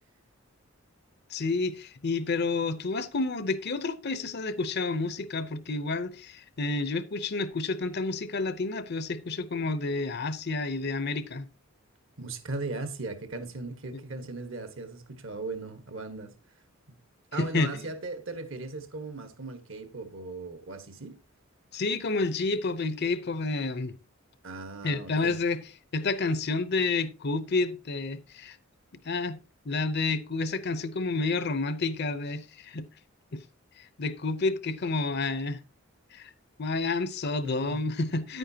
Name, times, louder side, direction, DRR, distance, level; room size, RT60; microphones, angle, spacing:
voice 1, 1.3-11.5 17.4-17.8 21.7-24.0 24.8-25.6 25.9-28.6 29.0-29.4 29.7-32.9 33.3-33.4 34.0-35.6 36.1-36.3 36.6-38.4, left 3 dB, 50° left, 0.6 m, -29 dB
voice 2, 12.2-16.3 17.3-21.2 24.4-25.4 37.4-37.8, right 3 dB, 60° right, 1.3 m, -38 dB
9.9 x 9.0 x 2.8 m
head